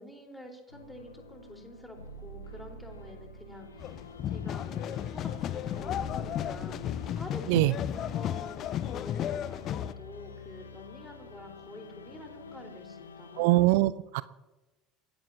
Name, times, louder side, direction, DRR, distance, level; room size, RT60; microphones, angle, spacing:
voice 1, 0.0-13.5, left 1 dB, 5° left, 1 dB, 4.6 m, -48 dB
sound 1, 0.7-13.7, left 2 dB, 80° left, 1.3 m, -48 dB
sound 2, 3.8-9.9, left 10 dB, 45° left, 0.6 m, -34 dB
voice 2, 13.4-14.2, right 18 dB, 60° right, 17 dB, 0.6 m, -23 dB
29.0 x 16.5 x 2.9 m, 1.1 s
figure-of-eight pair, 65°, 0 cm